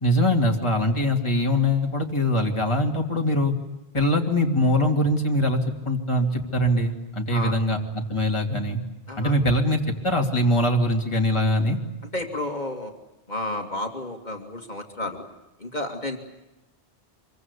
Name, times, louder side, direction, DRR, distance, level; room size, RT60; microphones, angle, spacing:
voice 1, 0.0-3.5 3.9-5.6 5.8-8.8 9.2-11.8, left 1 dB, 25° left, 1 dB, 2.7 m, -22 dB
voice 2, 12.1-12.9 13.3-15.3 15.6-16.2, left 1 dB, 45° left, 4 dB, 2.7 m, -31 dB
26.0 x 23.5 x 8.3 m, 0.98 s
omnidirectional pair, 1.1 m